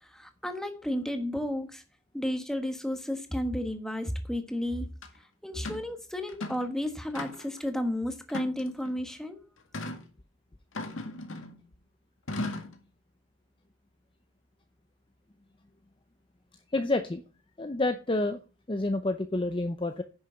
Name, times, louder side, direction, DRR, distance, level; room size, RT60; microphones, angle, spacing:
voice 1, 0.0-1.8 2.1-4.9 5.4-9.4, left 1 dB, ahead, 6 dB, 1.4 m, -32 dB
sound 1, 5.0-5.1 5.6-5.9 6.3-6.7 7.1-7.6 8.3-8.9 9.7-10.0 10.7-11.6 12.3-12.8, left 2 dB, 75° left, 2.0 m, -37 dB
voice 2, 16.7-17.2 17.6-18.4 18.7-20.0, left 2 dB, 25° left, 8 dB, 0.6 m, -28 dB
10.0 x 6.8 x 5.7 m, 0.36 s
head